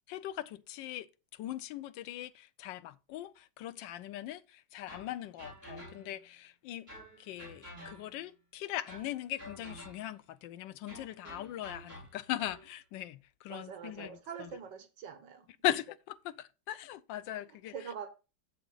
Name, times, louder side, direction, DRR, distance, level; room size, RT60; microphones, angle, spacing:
voice 1, 0.1-1.1 1.3-6.9 7.2-14.5 15.6-17.9, left 13 dB, 80° left, 1.3 m, -40 dB
sound 1, 4.9-6.3 6.9-8.3 8.9-10.2 10.9-12.7, equal, 10° left, 6.0 m, -50 dB
voice 2, 13.5-15.5 17.7-18.1, right 7 dB, 75° right, 1.7 m, -44 dB
7.6 x 7.2 x 3.9 m
omnidirectional pair, 2.0 m